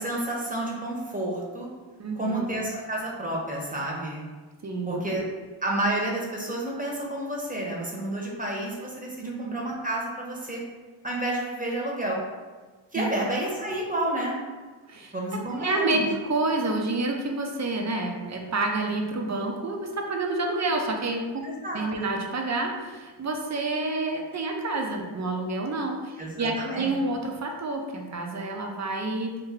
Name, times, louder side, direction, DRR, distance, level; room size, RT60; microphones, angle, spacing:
voice 1, 0.0-1.7 2.1-4.2 4.9-5.2 5.6-10.6 11.0-12.2 12.9-14.4 15.1-16.1 21.4-22.2 26.2-26.9, right 1 dB, 15° right, -3 dB, 0.9 m, -30 dB
voice 2, 2.0-2.5 4.6-5.0 9.2-9.6 12.9-13.1 14.9-15.1 15.5-21.4 21.7-29.4, right 2 dB, 35° right, 2 dB, 0.6 m, -29 dB
3.2 x 2.2 x 3.6 m, 1.3 s
cardioid pair, 50°, 48 cm